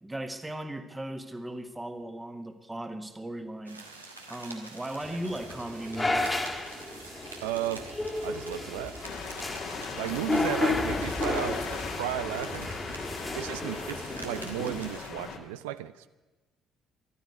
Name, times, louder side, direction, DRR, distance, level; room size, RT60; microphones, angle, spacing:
voice 1, 0.0-3.8 4.3-6.4 10.4-10.5, right 1 dB, 10° right, 8 dB, 1.6 m, -37 dB
sound 1, 3.7-15.1, right 3 dB, 85° right, 1.4 m, -47 dB
sound 2, 5.0-15.0, left 2 dB, 15° left, 1.9 m, -33 dB
voice 2, 7.4-7.9 8.2-9.0 10.0-12.7 13.3-16.1, right 13 dB, 70° right, 13 dB, 0.5 m, -34 dB
sound 3, 9.0-15.4, left 6 dB, 55° left, 1.9 m, -39 dB
14.0 x 12.0 x 8.0 m, 1.2 s
figure-of-eight pair, 50°, 0 cm